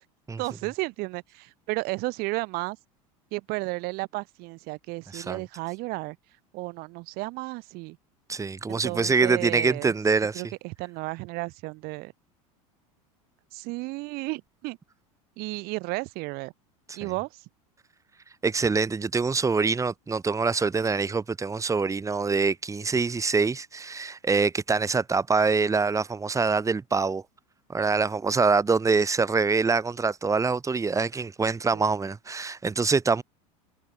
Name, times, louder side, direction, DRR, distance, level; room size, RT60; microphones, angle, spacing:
voice 1, 0.4-2.8 3.3-6.2 6.5-8.0 8.7-9.9 10.3-12.1 13.5-14.8 15.4-16.5 16.9-17.4 31.7-31.8, right 24 dB, 60° right, 3.8 m, -33 dB
voice 2, 8.3-10.4 16.9-17.1 18.4-27.2 27.7-33.2, right 4 dB, 15° right, 3.1 m, -25 dB
hypercardioid pair, 95°, 18 cm